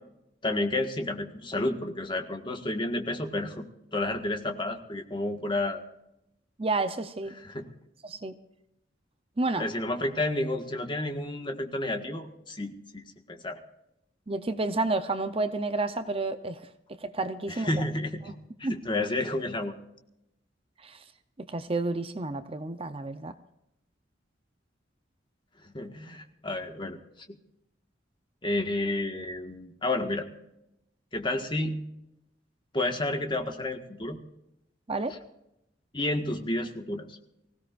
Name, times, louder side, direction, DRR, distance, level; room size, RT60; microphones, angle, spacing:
voice 1, 0.4-3.6 3.9-5.8 7.4-7.7 9.6-13.0 13.3-13.6 17.5-18.3 18.6-19.7 25.6-27.0 27.3-27.4 28.4-30.3 31.1-31.8 32.7-34.2 35.9-37.2, left 2 dB, 25° left, 4 dB, 1.7 m, -31 dB
voice 2, 6.6-7.3 8.0-8.3 9.4-9.6 14.3-17.7 18.6-18.7 20.8-21.0 21.4-23.3 34.9-35.1, right 3 dB, 30° right, 9 dB, 0.7 m, -30 dB
25.0 x 16.5 x 2.6 m, 0.83 s
head